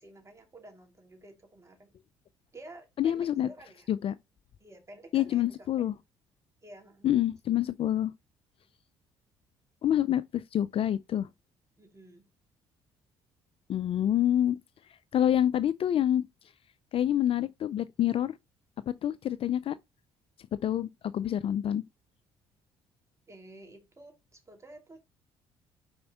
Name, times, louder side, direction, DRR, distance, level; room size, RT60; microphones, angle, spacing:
voice 1, 0.0-1.9 2.5-3.9 4.6-5.9 6.6-7.1 11.8-12.2 23.3-25.0, right 2 dB, 25° right, 2.7 m, -51 dB
voice 2, 3.0-3.5 3.9-4.1 5.1-5.9 7.0-8.1 9.8-11.3 13.7-14.6 15.1-16.2 16.9-18.3 18.9-19.8 20.6-21.8, left 11 dB, 45° left, 0.4 m, -27 dB
5.5 x 4.3 x 4.3 m
hypercardioid pair, 55°, 13 cm